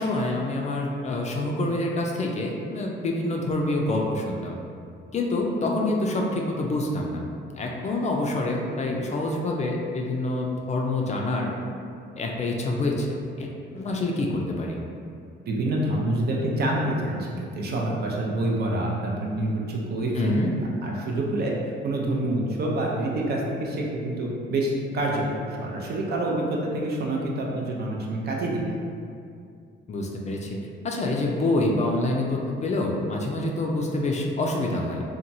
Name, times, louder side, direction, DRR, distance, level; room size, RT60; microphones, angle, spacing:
voice 1, 0.0-4.6 5.1-7.2 7.5-11.5 12.2-13.1 13.4-14.8 20.1-20.5 29.9-30.6 30.8-35.0, left 2 dB, 35° left, 0 dB, 0.4 m, -26 dB
voice 2, 15.5-17.3 17.6-20.4 20.8-21.5 21.8-28.8, right 1 dB, 55° right, -2 dB, 0.5 m, -27 dB
2.8 x 2.2 x 2.6 m, 2.4 s
cardioid pair, 90°, 20 cm